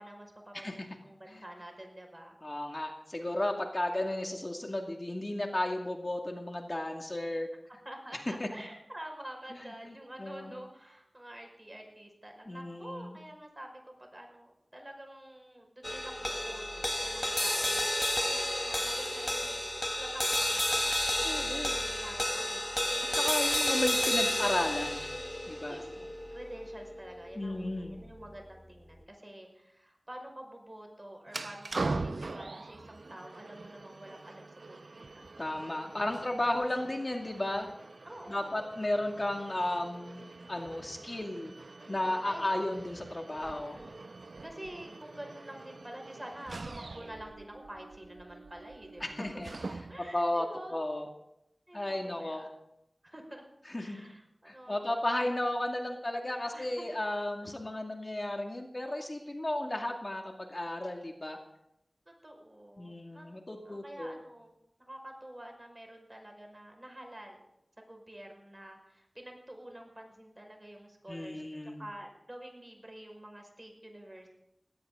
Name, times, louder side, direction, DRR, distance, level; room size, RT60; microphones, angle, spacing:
voice 1, 0.0-2.4 7.8-19.7 20.0-20.8 21.1-23.3 25.7-35.3 36.1-36.3 38.0-38.7 41.8-42.4 43.7-43.9 44.4-49.4 49.9-50.8 51.7-52.5 53.0-53.4 53.7-54.8 56.5-56.8 62.1-63.3 63.7-64.5 64.9-67.5 67.8-71.4 71.8-74.3, right 1 dB, 30° right, 2 dB, 5.5 m, -48 dB
voice 2, 2.4-7.5 8.4-8.5 10.2-10.5 12.5-13.2 21.2-21.8 23.1-25.1 25.5-25.8 27.4-28.0 35.4-37.7 38.3-41.5 41.9-43.8 49.0-49.5 50.1-50.5 50.7-51.1 51.7-52.5 53.7-54.0 54.5-61.4 62.8-64.2 71.1-71.8, left 1 dB, 40° left, 2 dB, 2.3 m, -34 dB
sound 1, 15.8-28.3, left 1 dB, 20° left, 1.1 m, -32 dB
sound 2, 31.3-50.2, right 3 dB, 85° right, 0.7 m, -43 dB
19.0 x 17.5 x 3.9 m, 0.81 s
wide cardioid pair, 50°, 0 cm